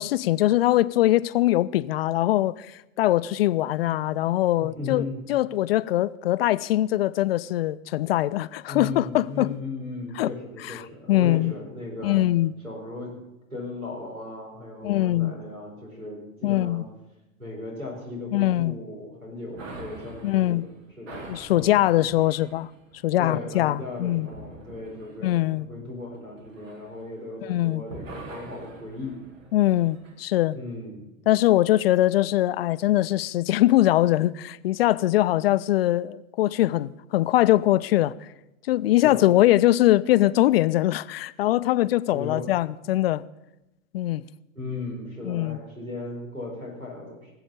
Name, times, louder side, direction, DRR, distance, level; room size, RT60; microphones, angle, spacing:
voice 1, 0.0-9.6 10.2-10.3 10.6-11.5 12.0-12.5 14.8-15.3 16.4-16.8 18.3-18.8 20.2-20.7 21.3-22.7 23.0-24.3 25.2-25.7 27.4-27.8 29.5-30.6 31.3-38.3 38.7-43.2 43.9-44.2 45.3-45.6, left 15 dB, 45° left, 0.4 m, -22 dB
voice 2, 4.6-5.2 8.7-12.2 12.6-13.2 13.5-16.8 17.4-20.6 21.0-21.8 23.2-29.2 30.5-31.1 39.0-39.3 42.1-42.5 44.5-47.3, left 2 dB, 90° right, 4.4 m, -37 dB
sound 1, 19.5-27.5 27.8-30.2, right 2 dB, 65° right, 2.1 m, -45 dB
19.0 x 7.8 x 7.0 m
figure-of-eight pair, 85°, 41 cm